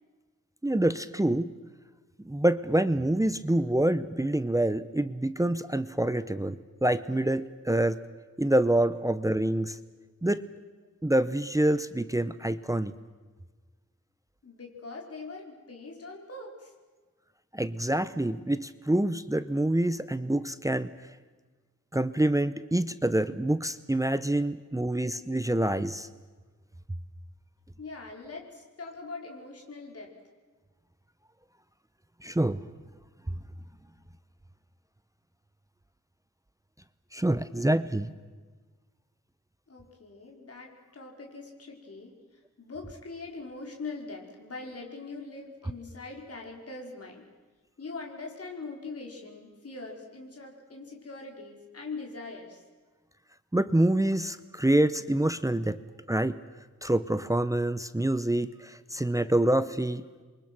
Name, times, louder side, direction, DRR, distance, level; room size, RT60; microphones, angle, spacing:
voice 1, 0.6-1.5 2.3-8.0 8.4-9.8 10.2-10.4 11.0-12.9 17.5-20.9 21.9-26.1 32.2-32.6 33.3-33.4 37.1-38.1 53.5-55.8 56.1-56.4 56.8-60.0, right 1 dB, 10° right, 13 dB, 0.7 m, -26 dB
voice 2, 14.4-16.7 27.8-30.1 39.7-47.3 47.8-52.6, left 3 dB, 50° left, 0 dB, 4.7 m, -42 dB
29.0 x 23.5 x 6.1 m, 1.4 s
wide cardioid pair, 145°, 31 cm